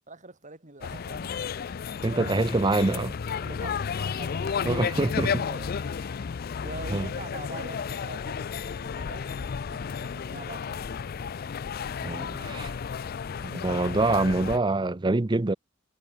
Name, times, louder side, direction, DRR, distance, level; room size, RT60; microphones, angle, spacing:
voice 1, 0.1-1.3 2.0-2.6 3.3-5.9 6.6-11.1 12.9-13.2, right 3 dB, 40° right, 4.7 m, -44 dB
sound 1, 0.8-14.6, left 6 dB, 50° left, 0.4 m, -33 dB
voice 2, 2.0-3.2 4.6-5.4 6.9-7.1 12.0-12.7 13.4-15.5, right 2 dB, 25° right, 0.6 m, -25 dB
head